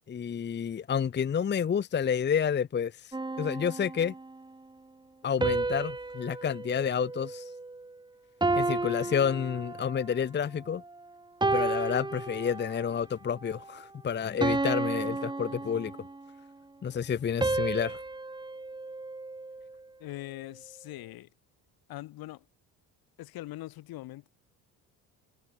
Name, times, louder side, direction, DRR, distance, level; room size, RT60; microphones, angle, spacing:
voice 1, 0.1-4.1 5.2-7.5 8.5-10.8 11.5-15.9 16.8-18.0, left 7 dB, 30° left, 0.8 m, -29 dB
sound 1, 3.1-4.4 5.4-7.9 8.4-10.1 10.7-10.9 11.4-12.9 13.4-13.7 14.4-16.3 17.4-19.8, right 2 dB, 10° right, 1.4 m, -32 dB
voice 2, 20.0-21.3 21.9-22.5 23.2-24.3, left 16 dB, 70° left, 4.2 m, -42 dB
supercardioid pair, 80°, 37 cm